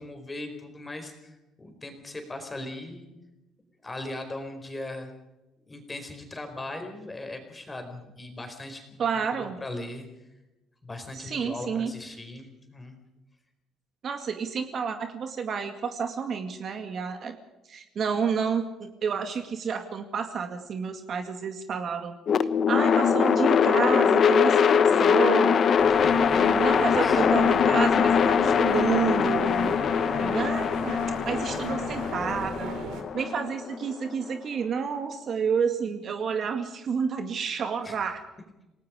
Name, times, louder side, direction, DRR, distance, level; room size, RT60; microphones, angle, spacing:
voice 1, 0.0-3.1 3.8-5.1 5.7-8.9 9.3-10.1 10.8-13.0 25.9-26.3 26.9-27.3 37.8-38.0, left 2 dB, 15° left, 5 dB, 4.5 m, -39 dB
voice 2, 9.0-9.6 11.1-11.9 14.0-17.3 17.7-22.1 22.7-25.6 26.3-29.8 30.2-31.0 31.3-32.7 33.1-38.2, right 6 dB, 40° right, 6 dB, 2.1 m, -30 dB
sound 1, 22.3-34.4, left 7 dB, 40° left, 1.1 m, -22 dB
sound 2, 25.8-33.0, right 5 dB, 70° right, 3.9 m, -38 dB
28.5 x 19.0 x 5.1 m, 0.98 s
cardioid pair, 145°, 0 cm